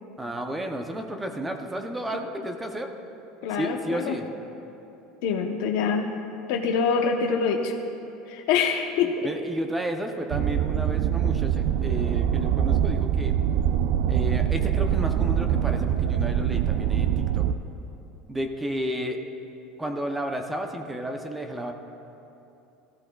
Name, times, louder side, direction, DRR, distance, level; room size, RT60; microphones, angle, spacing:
voice 1, 0.2-2.9 3.6-4.3 9.2-13.4 14.1-17.5 18.3-19.2 19.8-21.7, right 1 dB, 10° right, 5 dB, 0.6 m, -32 dB
voice 2, 3.4-4.2 5.2-6.1 6.5-7.7 8.3-9.3, left 6 dB, 70° left, 2 dB, 0.7 m, -25 dB
sound 1, 10.3-17.5, right 9 dB, 55° right, 0.3 m, -24 dB
17.5 x 14.0 x 2.3 m, 2.9 s
cardioid pair, 170°, 0 cm